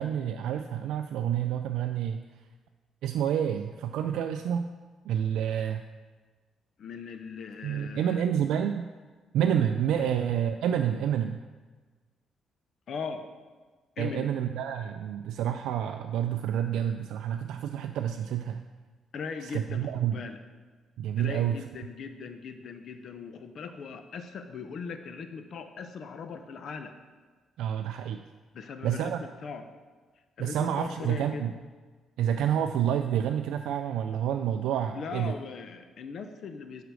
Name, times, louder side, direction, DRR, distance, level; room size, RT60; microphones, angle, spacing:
voice 1, 0.0-2.3 3.0-4.7 5.0-5.8 7.6-8.9 9.3-11.4 14.0-18.6 19.4-20.2 21.0-21.6 27.6-28.3 28.8-29.2 30.4-31.5 32.2-35.3, right 9 dB, 85° right, 6 dB, 0.3 m, -28 dB
voice 2, 6.8-8.3 10.0-10.1 12.9-13.2 14.0-14.3 19.1-20.4 21.2-26.9 28.5-29.6 30.4-31.5 34.9-36.8, left 5 dB, 65° left, 8 dB, 0.7 m, -39 dB
8.0 x 5.0 x 6.2 m, 1.4 s
cardioid pair, 90°, 0 cm